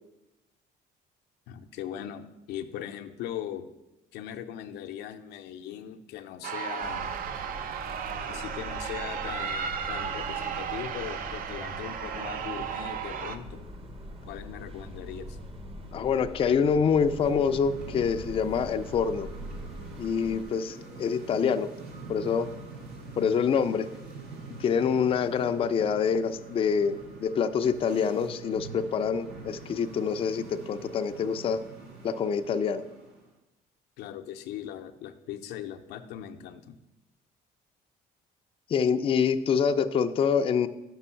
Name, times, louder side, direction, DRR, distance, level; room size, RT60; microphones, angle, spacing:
voice 1, 1.5-3.7 4.1-7.1 8.2-13.6 14.3-15.4 34.0-36.7, left 10 dB, 80° left, 7 dB, 0.5 m, -39 dB
sound 1, 6.4-13.4, right 7 dB, 60° right, 0.6 m, -34 dB
sound 2, 6.8-20.4, equal, 35° right, 0.9 m, -43 dB
voice 2, 15.9-19.3 20.0-21.7 22.1-22.5 23.2-23.9 24.6-31.6 32.0-32.8 38.7-40.7, left 6 dB, 35° left, 9 dB, 0.4 m, -26 dB
sound 3, 16.7-33.3, right 3 dB, 80° right, 1.9 m, -45 dB
6.1 x 5.3 x 5.6 m, 0.94 s
cardioid pair, 110°, 17 cm